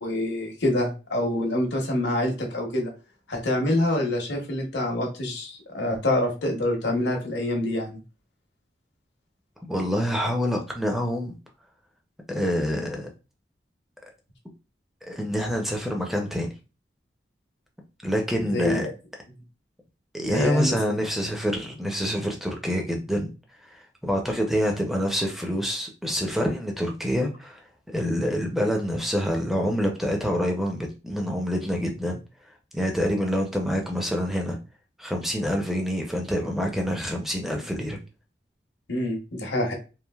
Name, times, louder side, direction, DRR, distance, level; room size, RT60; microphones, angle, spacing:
voice 1, 0.0-2.9 3.3-8.0 18.5-18.9 20.2-20.8 38.9-39.7, left 1 dB, 80° left, 0 dB, 0.8 m, -26 dB
voice 2, 9.6-11.4 12.3-13.1 15.1-16.5 18.0-18.9 20.1-23.3 23.7-27.6 27.9-32.2 32.7-34.6 35.0-38.0, equal, ahead, 2 dB, 0.4 m, -26 dB
3.1 x 2.5 x 2.2 m, 0.32 s
head